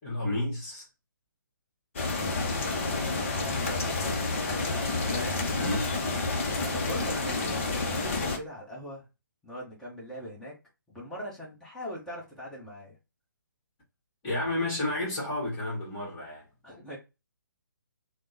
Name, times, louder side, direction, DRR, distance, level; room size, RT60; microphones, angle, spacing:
voice 1, 0.0-0.9 5.5-6.1 14.2-16.5, left 1 dB, 20° left, 1.4 m, -31 dB
sound 1, 2.0-8.4, left 3 dB, 40° left, 0.6 m, -29 dB
voice 2, 3.6-4.7 5.0-5.4 6.4-9.0 9.4-10.5 10.9-13.0 16.6-17.0, equal, 5° left, 0.9 m, -41 dB
3.2 x 2.0 x 2.7 m
figure-of-eight pair, 135°, 11 cm